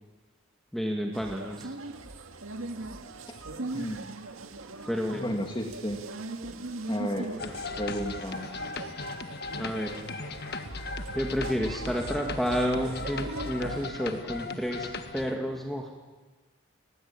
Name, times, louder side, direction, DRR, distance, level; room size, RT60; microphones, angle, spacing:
voice 1, 0.7-1.7 4.9-5.3 7.3-7.5 9.6-10.0 11.1-15.9, equal, ahead, 1 dB, 2.2 m, -30 dB
sound 1, 1.1-13.9, right 2 dB, 85° right, 1.9 m, -40 dB
voice 2, 3.7-4.1 5.1-6.0 6.9-7.3 7.8-8.5, equal, 20° left, 2 dB, 2.0 m, -32 dB
sound 2, 7.4-15.4, left 4 dB, 50° left, 1.6 m, -38 dB
29.5 x 20.0 x 8.9 m, 1.3 s
head